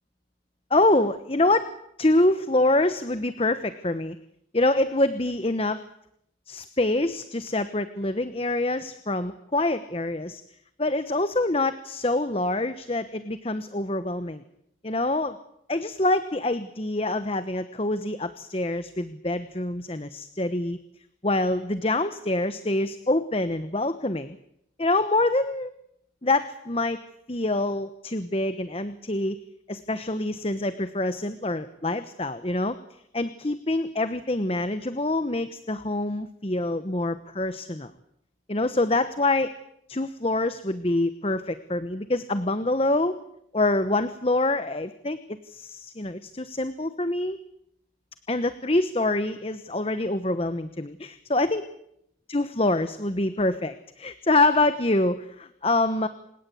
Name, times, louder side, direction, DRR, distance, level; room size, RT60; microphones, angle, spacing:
voice 1, 0.7-1.7 2.0-4.2 4.5-5.8 6.5-10.4 10.8-14.4 14.8-15.4 15.7-20.8 21.2-24.4 24.8-25.7 26.2-27.0 27.3-29.4 29.7-32.8 33.1-37.9 38.5-39.5 39.9-43.1 43.5-45.2 45.5-47.4 48.3-51.7 52.3-56.1, left 2 dB, 30° left, 11 dB, 1.0 m, -25 dB
28.0 x 17.5 x 8.5 m, 0.75 s
head